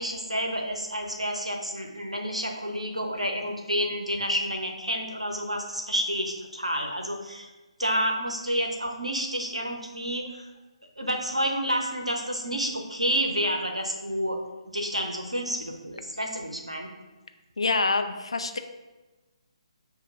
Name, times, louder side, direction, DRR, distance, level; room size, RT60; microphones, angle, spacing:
voice 1, 0.0-7.5 7.8-10.5 11.0-14.4 14.7-16.9, equal, 85° right, 2 dB, 0.7 m, -29 dB
voice 2, 17.6-18.6, left 3 dB, 60° left, 8 dB, 0.3 m, -26 dB
6.4 x 2.6 x 2.5 m, 1.2 s
figure-of-eight pair, 140°, 3 cm